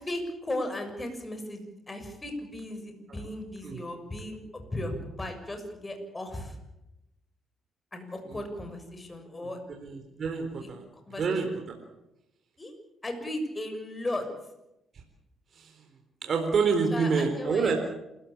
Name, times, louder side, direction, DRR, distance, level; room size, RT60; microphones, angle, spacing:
voice 1, 0.0-6.6 7.9-9.6 10.3-10.7 11.0-11.4 12.6-12.7 13.0-14.3 16.9-17.8, left 1 dB, 25° left, 6 dB, 6.8 m, -36 dB
voice 2, 9.7-10.8 11.2-11.8 15.5-15.9 16.2-17.8, right 5 dB, 55° right, 3 dB, 3.9 m, -28 dB
27.5 x 15.5 x 8.7 m, 0.90 s
supercardioid pair, 65°, 0 cm